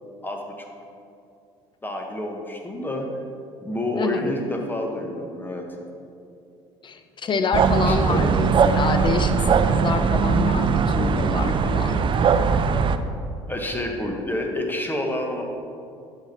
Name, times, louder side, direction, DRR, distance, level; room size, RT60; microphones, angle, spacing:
voice 1, 0.2-0.7 1.8-3.1 3.6-5.6 7.8-8.3 13.5-15.4, left 1 dB, 15° left, 2 dB, 1.6 m, -28 dB
voice 2, 4.0-4.4 6.8-12.0, left 4 dB, 35° left, 8 dB, 0.8 m, -27 dB
sound 1, 7.5-13.0, right 6 dB, 40° right, 0.5 m, -20 dB
10.5 x 5.9 x 4.5 m, 2.5 s
hypercardioid pair, 65°, 14 cm